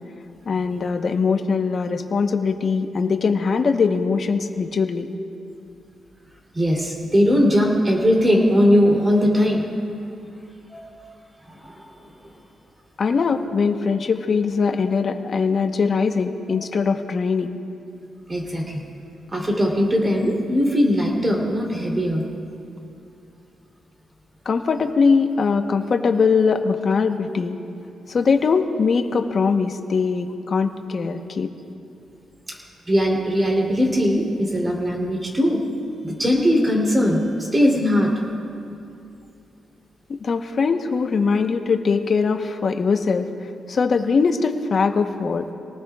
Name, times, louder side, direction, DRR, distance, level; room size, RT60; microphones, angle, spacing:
voice 1, 0.5-5.1 13.0-17.6 24.4-27.6 28.1-31.5 40.1-43.3 43.7-45.5, left 5 dB, 45° left, 5 dB, 1.0 m, -21 dB
voice 2, 6.5-9.6 10.7-10.8 11.5-11.8 18.3-18.8 19.3-22.3 32.9-35.6 36.0-38.1, equal, 20° right, -2 dB, 3.3 m, -19 dB
28.0 x 19.0 x 2.4 m, 2.6 s
cardioid pair, 115°, 0 cm